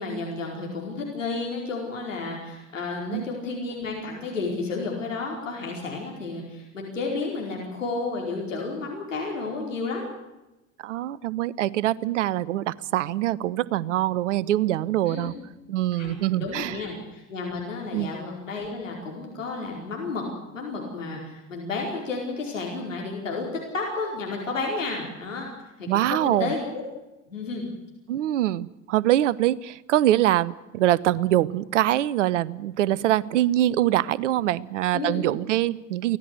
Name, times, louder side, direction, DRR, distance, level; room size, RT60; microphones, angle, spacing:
voice 1, 0.0-10.1 15.1-15.3 15.9-20.2 20.5-23.5 23.7-25.5 25.8-26.8 27.3-27.6 34.9-35.2, left 3 dB, 80° left, -1 dB, 4.9 m, -32 dB
voice 2, 10.8-15.3 15.7-16.8 17.9-18.1 25.9-26.5 28.1-36.2, right 13 dB, 70° right, 22 dB, 0.9 m, -24 dB
24.5 x 17.5 x 8.0 m, 0.98 s
figure-of-eight pair, 60°, 38 cm